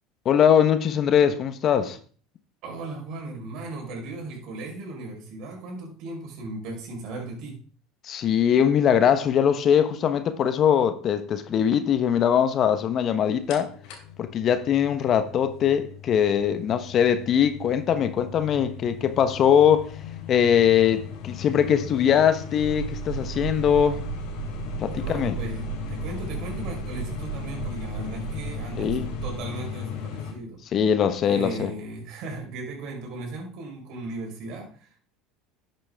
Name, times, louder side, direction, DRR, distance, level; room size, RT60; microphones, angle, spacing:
voice 1, 0.2-2.0 8.0-13.7 14.2-19.9 20.3-24.0 24.8-25.4 28.8-29.0 30.7-31.7, left 8 dB, 45° left, 1.2 m, -21 dB
voice 2, 2.6-7.6 24.9-30.6 31.2-35.0, right 2 dB, 60° right, 5.2 m, -37 dB
sound 1, 13.5-30.3, left 8 dB, 65° left, 2.9 m, -37 dB
sound 2, 22.6-29.4, right 11 dB, 75° right, 1.1 m, -35 dB
11.5 x 8.8 x 3.7 m
hypercardioid pair, 80°, 0 cm